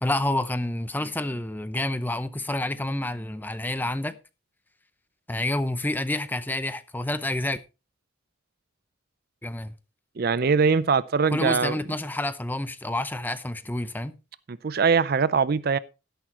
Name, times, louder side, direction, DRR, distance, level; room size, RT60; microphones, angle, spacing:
voice 1, 0.0-4.2 5.3-7.6 9.4-9.7 11.3-14.1, left 1 dB, 10° left, 0.6 m, -28 dB
voice 2, 10.2-11.8 14.5-15.8, right 5 dB, 45° right, 0.4 m, -22 dB
12.5 x 11.0 x 2.9 m
head